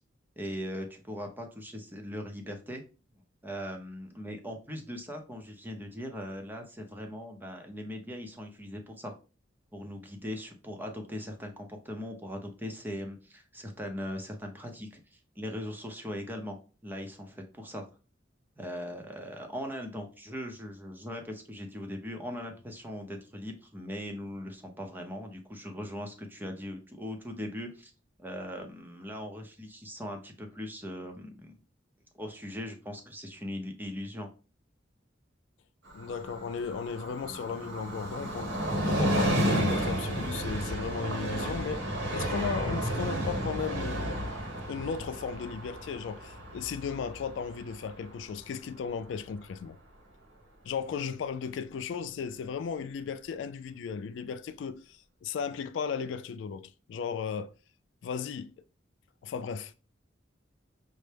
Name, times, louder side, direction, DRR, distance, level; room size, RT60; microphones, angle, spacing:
voice 1, 0.4-2.8 3.4-9.1 9.7-16.6 16.8-17.9 18.6-27.9 28.2-31.6 32.1-34.3, equal, 10° right, 0.6 m, -40 dB
voice 2, 35.9-38.5 38.8-44.1 44.7-49.8 50.6-57.5 58.0-58.5 59.2-59.7, left 6 dB, 75° left, 0.3 m, -35 dB
Train, 35.9-49.2 49.5-49.6, right 1 dB, 75° right, 1.2 m, -32 dB
5.4 x 2.1 x 3.3 m
head